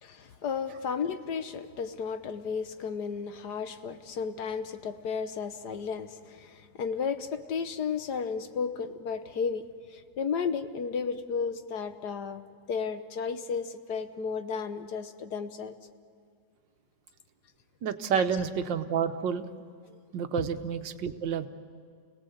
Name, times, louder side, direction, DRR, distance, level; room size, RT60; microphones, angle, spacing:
voice 1, 0.0-12.4 12.7-15.7 18.2-18.3 20.4-20.5, left 6 dB, 65° left, 10 dB, 1.5 m, -33 dB
voice 2, 17.8-19.4 20.1-21.5, right 7 dB, 80° right, 9 dB, 1.7 m, -29 dB
30.0 x 18.0 x 8.0 m, 2.2 s
omnidirectional pair, 2.0 m